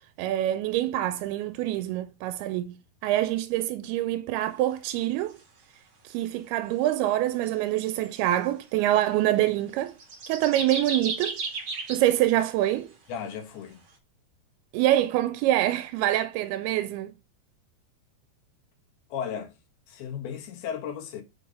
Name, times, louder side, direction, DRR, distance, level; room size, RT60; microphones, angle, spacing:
voice 1, 0.2-2.8 3.0-5.4 6.0-9.9 10.3-11.4 11.9-12.9 14.7-17.1, right 14 dB, 85° right, 2.5 m, -25 dB
sound 1, 7.4-7.5 8.0-8.2 9.9-12.8, right 4 dB, 40° right, 2.2 m, -34 dB
voice 2, 13.1-13.8 19.1-19.5 19.9-21.2, left 8 dB, 75° left, 3.3 m, -35 dB
7.0 x 5.5 x 5.0 m
omnidirectional pair, 4.4 m